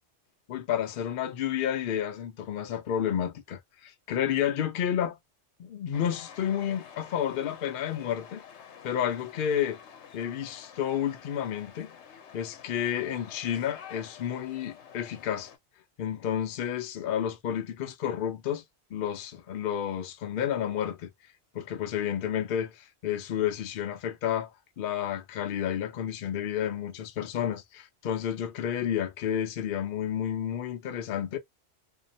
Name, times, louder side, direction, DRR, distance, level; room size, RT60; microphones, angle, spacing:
voice 1, 0.5-5.2 5.6-8.4 8.8-9.8 10.1-11.9 12.3-15.5 16.0-18.6 18.9-21.1 21.5-24.5 24.8-31.4, left 9 dB, 60° left, 0.6 m, -31 dB
sound 1, 5.9-15.6, left 7 dB, 85° left, 0.9 m, -49 dB
2.7 x 2.0 x 2.6 m
omnidirectional pair, 1.1 m